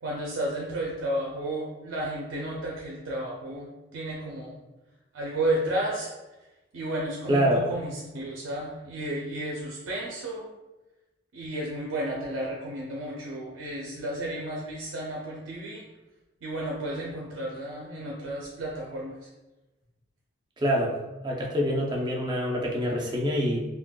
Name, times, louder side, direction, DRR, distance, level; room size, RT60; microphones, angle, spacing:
voice 1, 0.0-4.6 5.1-6.1 6.7-10.4 11.3-15.8 16.4-19.3 22.2-22.3, right 1 dB, 80° right, -3 dB, 0.5 m, -32 dB
voice 2, 7.3-7.7 20.6-20.9 21.2-23.6, equal, 25° right, -2 dB, 0.5 m, -25 dB
3.7 x 2.2 x 2.3 m, 1.1 s
head